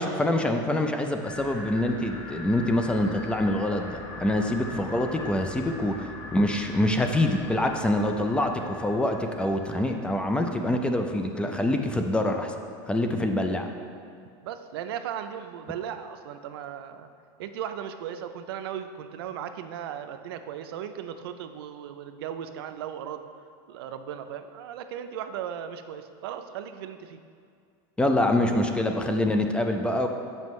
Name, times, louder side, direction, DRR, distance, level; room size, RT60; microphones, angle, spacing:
voice 1, 0.0-12.6 12.9-13.7 28.0-30.1, left 1 dB, 10° left, 5 dB, 0.4 m, -25 dB
sound 1, 1.2-10.7, left 3 dB, 40° left, 1.1 m, -42 dB
voice 2, 14.4-17.1 17.4-23.2 23.7-27.2, right 9 dB, 85° right, 9 dB, 0.4 m, -37 dB
7.6 x 5.3 x 3.1 m, 2.2 s
supercardioid pair, 130°, 12 cm